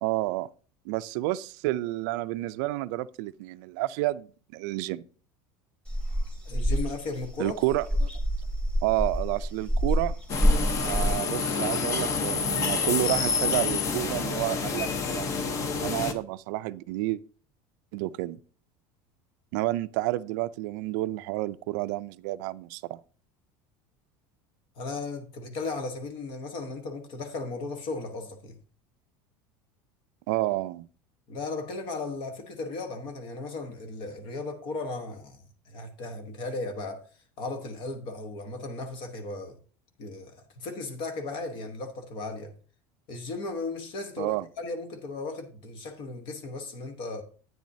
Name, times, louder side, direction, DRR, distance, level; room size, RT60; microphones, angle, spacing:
voice 1, 0.0-0.5 0.9-5.0 7.4-8.1 8.8-10.1 10.8-14.9 15.1-15.3 15.8-17.2 17.9-18.4 19.5-23.0 30.3-30.9 44.2-44.5, right 17 dB, 70° right, 0.4 m, -30 dB
sound 1, 5.9-11.1, equal, 10° left, 2.2 m, -27 dB
voice 2, 6.4-7.6 24.8-28.6 31.3-37.1 37.4-39.5 40.0-42.5 43.1-47.2, left 3 dB, 50° left, 1.2 m, -36 dB
sound 2, 10.3-16.1, left 5 dB, 30° left, 0.8 m, -28 dB
10.5 x 9.3 x 2.7 m
cardioid pair, 170°, 11 cm